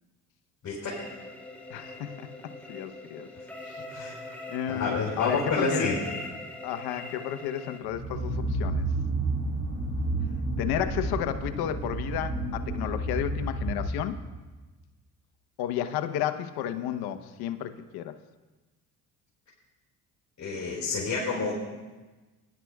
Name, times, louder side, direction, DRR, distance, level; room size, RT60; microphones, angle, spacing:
voice 1, 0.6-1.0 3.9-4.2 4.7-6.0 20.4-21.5, left 4 dB, 45° left, -8 dB, 4.8 m, -29 dB
sound 1, 0.9-7.8, left 2 dB, 5° left, 2.6 m, -42 dB
voice 2, 1.7-2.3 2.7-3.3 3.7-4.1 4.5-5.9 6.6-8.9 10.6-14.2 15.6-18.1, left 10 dB, 75° left, 9 dB, 1.0 m, -32 dB
sound 2, 7.9-14.4, right 2 dB, 40° right, 3.7 m, -31 dB
21.5 x 11.5 x 2.4 m, 1.2 s
supercardioid pair, 75°, 38 cm